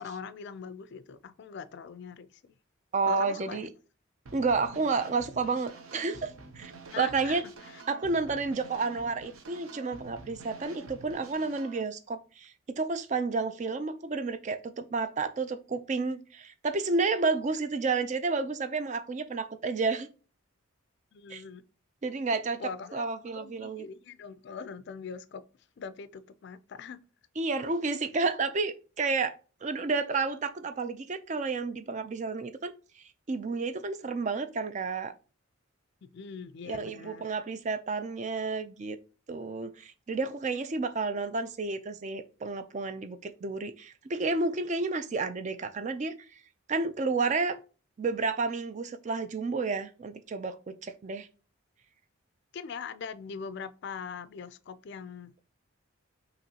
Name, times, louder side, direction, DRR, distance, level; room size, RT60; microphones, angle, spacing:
voice 1, 0.0-2.5 3.1-3.7 6.9-7.4 7.7-7.8 21.1-21.6 22.6-23.1 23.3-25.4 25.8-27.0 36.1-37.3 52.5-55.4, left 6 dB, 55° left, 0.3 m, -42 dB
voice 2, 2.9-3.7 4.3-7.4 7.9-20.1 21.3-21.4 22.0-23.8 27.4-29.3 29.6-32.7 33.3-35.1 36.7-39.0 39.3-46.1 46.7-47.6 48.0-50.5 50.8-51.3, right 4 dB, 35° right, 0.4 m, -31 dB
sound 1, 4.3-11.8, right 3 dB, 85° right, 0.8 m, -48 dB
5.3 x 3.0 x 2.8 m
head